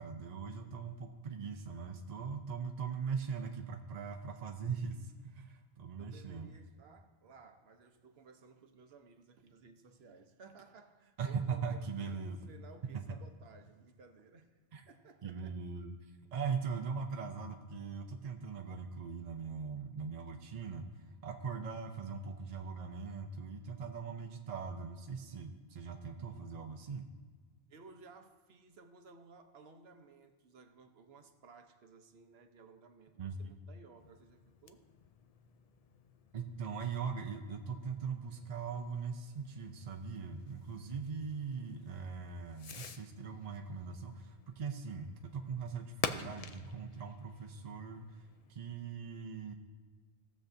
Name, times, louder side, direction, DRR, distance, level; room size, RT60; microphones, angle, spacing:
voice 1, 0.0-6.5 11.2-12.5 12.9-13.0 14.7-14.8 15.2-16.0 16.3-27.1 33.2-33.5 36.3-48.2 48.5-49.5, right 5 dB, 45° right, 3 dB, 0.6 m, -40 dB
voice 2, 6.0-11.8 12.1-14.6 14.9-15.6 27.7-34.9, right 4 dB, 80° right, 6 dB, 1.1 m, -58 dB
Fireworks, 33.9-48.5, left 6 dB, 50° left, 0.4 m, -48 dB
18.0 x 7.1 x 2.6 m, 1.5 s
omnidirectional pair, 1.0 m